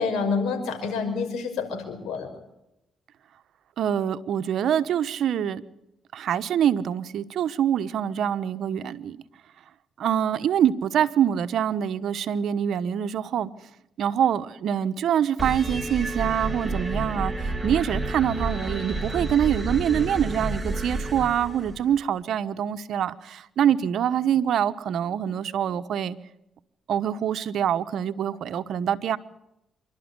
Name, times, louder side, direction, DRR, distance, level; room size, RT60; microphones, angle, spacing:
voice 1, 0.0-2.3, left 5 dB, 85° left, 5 dB, 5.5 m, -28 dB
voice 2, 3.8-5.6 6.1-9.2 10.0-13.5 14.0-26.2 26.9-29.2, right 9 dB, 70° right, 13 dB, 1.0 m, -25 dB
sound 1, 15.4-22.0, right 2 dB, 5° right, 3.2 m, -30 dB
26.5 x 12.5 x 9.7 m, 0.87 s
cardioid pair, 90°, 0 cm